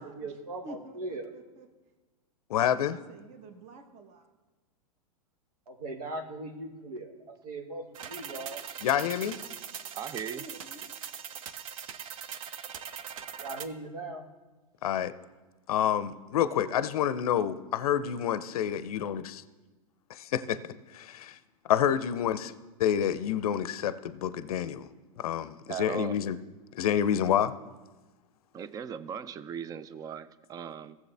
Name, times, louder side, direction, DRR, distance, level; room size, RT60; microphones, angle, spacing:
voice 1, 0.0-1.3 5.7-8.6 13.4-14.3, right 2 dB, 75° right, 1.6 m, -39 dB
voice 2, 0.6-1.7 2.9-4.3 10.2-10.8, right 2 dB, 35° right, 1.2 m, -48 dB
voice 3, 2.5-3.0 8.8-9.4 14.8-15.1 15.7-19.4 20.1-20.6 20.9-21.4 21.7-22.5 22.8-24.9 25.2-26.4 26.7-27.5, left 9 dB, 70° left, 0.6 m, -28 dB
sound 1, 7.9-13.7, right 8 dB, 60° right, 0.7 m, -41 dB
voice 4, 9.9-10.5 25.7-26.2 28.5-31.0, right 8 dB, 20° right, 0.4 m, -38 dB
15.5 x 7.0 x 3.4 m
hypercardioid pair, 115°, 19 cm